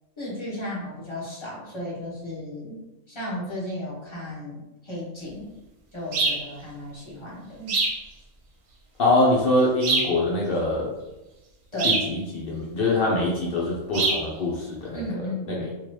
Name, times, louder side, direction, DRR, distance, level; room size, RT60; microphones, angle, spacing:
voice 1, 0.2-2.8 3.1-5.5 5.9-7.8 11.7-12.0 14.9-15.7, left 1 dB, 25° left, -6 dB, 0.9 m, -34 dB
sound 1, 6.1-6.5 7.7-8.0 9.8-10.2 11.8-12.1 13.9-14.3, right 3 dB, 60° right, 0.8 m, -24 dB
voice 2, 9.0-10.9 11.8-15.0 15.5-15.7, left 2 dB, 55° left, -4 dB, 0.7 m, -24 dB
2.8 x 2.4 x 3.1 m, 1.0 s
omnidirectional pair, 1.4 m